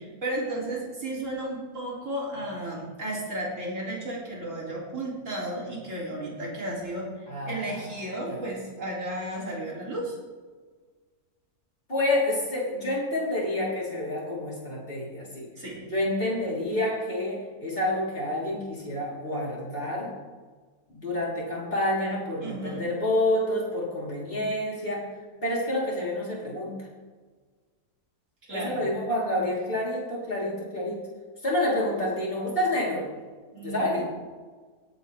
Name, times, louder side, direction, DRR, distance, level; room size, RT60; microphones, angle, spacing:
voice 1, 0.0-10.2 15.6-15.9 22.4-22.8 28.5-28.9 33.5-34.0, right 1 dB, 50° right, -4 dB, 3.7 m, -33 dB
voice 2, 7.3-7.8 8.3-8.4 11.9-15.5 15.9-20.1 20.9-25.1 25.4-26.7 28.5-31.0 31.4-33.0 33.6-34.0, left 1 dB, 35° left, -6 dB, 4.2 m, -28 dB
17.5 x 9.6 x 3.5 m, 1.4 s
omnidirectional pair, 1.7 m